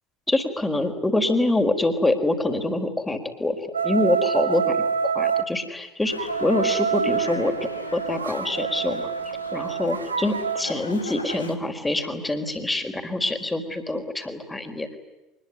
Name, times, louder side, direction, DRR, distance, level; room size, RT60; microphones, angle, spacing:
voice 1, 0.3-3.6 3.8-9.1 9.5-15.0, left 2 dB, 10° left, 6 dB, 4.5 m, -25 dB
sound 1, 3.7-5.5 6.2-10.6, right 7 dB, 75° right, 1.1 m, -26 dB
Dog, 6.0-11.5, left 3 dB, 85° left, 2.7 m, -38 dB
25.5 x 21.5 x 9.6 m, 1.0 s
figure-of-eight pair, 70°, 0 cm